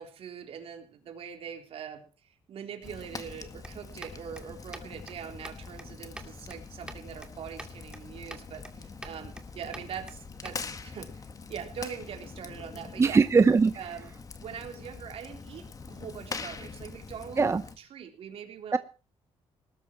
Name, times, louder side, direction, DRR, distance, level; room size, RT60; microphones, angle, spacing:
voice 1, 0.0-2.1 2.5-13.2 13.7-14.1 14.4-17.4 17.8-18.8, right 8 dB, 65° right, 5 dB, 3.7 m, -42 dB
Fire, 2.8-17.8, left 4 dB, 35° left, 2.0 m, -44 dB
sound 1, 3.6-10.7, right 1 dB, 10° right, 2.7 m, -48 dB
voice 2, 13.0-13.7 17.4-17.6 18.7-18.8, right 4 dB, 25° right, 12 dB, 0.7 m, -20 dB
19.5 x 12.5 x 4.6 m, 0.36 s
cardioid pair, 105°, 11 cm